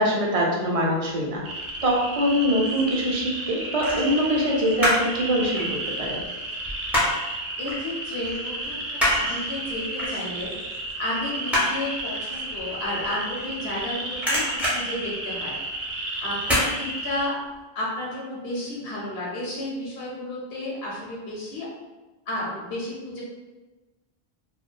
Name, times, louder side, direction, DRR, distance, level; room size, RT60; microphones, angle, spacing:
voice 1, 0.0-1.4 1.8-5.7 6.0-6.2, equal, 50° right, -2 dB, 0.4 m, -23 dB
sound 1, 1.4-17.3, right 2 dB, 80° right, 0.8 m, -33 dB
sound 2, 2.3-2.9 3.8-5.2 5.4-7.3 7.7-7.9 8.2-13.8 14.1-15.8 16.4-16.7 17.1-17.2, equal, ahead, 0.6 m, -27 dB
voice 2, 7.6-10.5 11.0-14.4 14.7-15.5 16.2-17.3 17.7-21.7 22.3-23.2, left 1 dB, 75° left, -5 dB, 0.9 m, -32 dB
2.6 x 2.1 x 2.2 m, 1.1 s
omnidirectional pair, 1.0 m